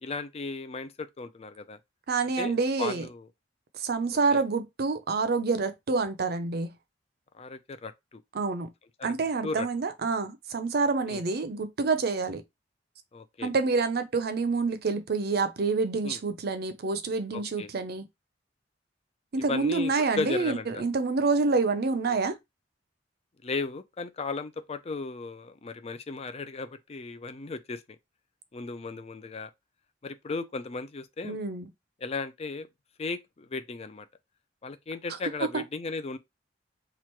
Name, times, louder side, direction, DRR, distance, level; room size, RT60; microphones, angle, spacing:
voice 1, 0.0-1.8 2.4-3.3 4.3-4.4 7.3-8.2 9.0-9.1 9.4-9.7 11.1-11.2 13.1-13.5 16.0-16.2 17.3-17.7 19.4-20.8 23.4-27.8 28.5-29.5 30.0-31.4 32.0-32.7 33.0-34.1 34.6-36.2, left 3 dB, 35° left, 0.4 m, -36 dB
voice 2, 2.1-3.1 3.7-6.7 8.3-8.7 9.0-12.4 13.4-18.1 19.3-22.4 31.2-31.7 35.5-35.6, right 4 dB, 60° right, 0.6 m, -27 dB
3.1 x 2.4 x 4.4 m
head